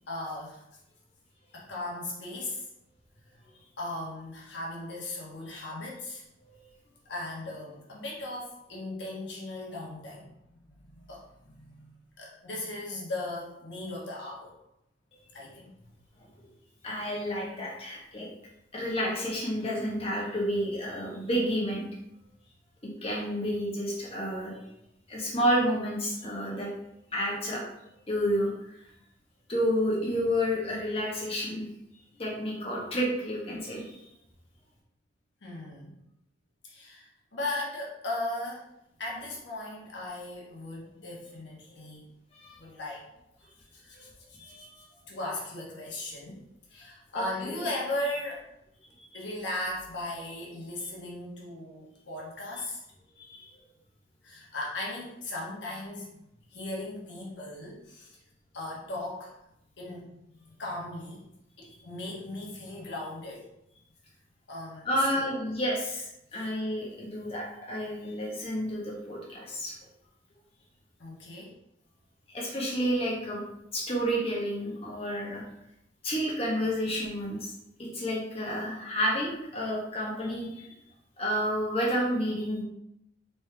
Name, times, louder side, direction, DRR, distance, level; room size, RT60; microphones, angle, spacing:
voice 1, 0.1-0.6 1.5-2.7 3.8-6.2 7.1-10.3 10.7-11.9 12.2-14.5 15.3-15.7 35.4-35.9 36.6-38.7 39.0-42.1 42.6-43.0 43.7-44.1 45.1-46.4 46.7-48.4 49.1-52.8 54.2-56.2 56.5-58.2 58.5-59.3 59.8-60.1 60.6-61.2 61.6-63.5 64.5-65.5 71.0-71.5, left 1 dB, 65° left, -4 dB, 1.2 m, -37 dB
voice 2, 16.8-18.3 18.7-21.9 22.8-24.6 25.1-26.7 27.1-27.6 28.1-28.5 29.5-31.6 32.2-33.9 42.4-42.6 44.4-44.7 47.1-47.5 49.0-49.1 53.3-53.5 64.8-69.7 72.3-73.4 73.7-75.4 76.0-77.5 77.8-80.7 81.2-82.6, equal, 30° left, -3 dB, 1.2 m, -30 dB
4.3 x 3.3 x 3.4 m, 0.82 s
head